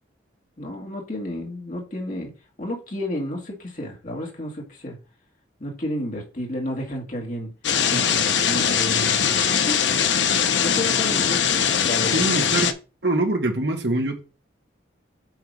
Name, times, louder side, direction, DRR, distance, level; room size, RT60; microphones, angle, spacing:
voice 1, 0.6-2.3 2.6-5.0 5.6-7.5 7.9-9.8 10.6-11.4 11.9-12.2, left 1 dB, 40° left, 1.8 m, -31 dB
sound 1, 7.6-12.7, left 7 dB, 65° left, 0.7 m, -21 dB
voice 2, 12.1-12.7 13.0-14.2, right 2 dB, 60° right, 1.4 m, -23 dB
7.9 x 2.9 x 5.2 m
head